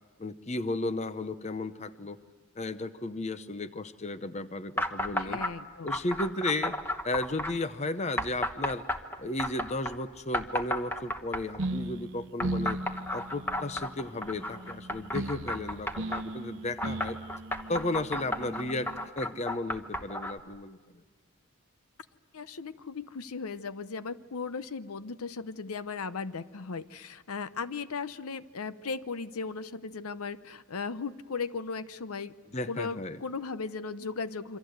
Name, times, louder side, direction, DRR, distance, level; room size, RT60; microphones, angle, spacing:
voice 1, 0.2-2.2 2.6-5.4 5.8-6.8 7.0-8.9 9.2-12.8 13.1-17.2 17.7-20.8 32.5-33.2, left 2 dB, 30° left, 12 dB, 0.8 m, -34 dB
sound 1, 4.8-5.5 5.9-7.5 8.2-10.0 10.3-11.6 12.4-16.2 16.8-20.4, left 1 dB, 10° left, 1.1 m, -33 dB
voice 2, 5.2-6.0 22.3-32.3 32.7-34.6, left 4 dB, 80° left, 14 dB, 0.8 m, -37 dB
sound 2, 11.6-19.1, right 1 dB, 55° right, 0.7 m, -38 dB
27.5 x 25.0 x 8.0 m, 1.3 s
head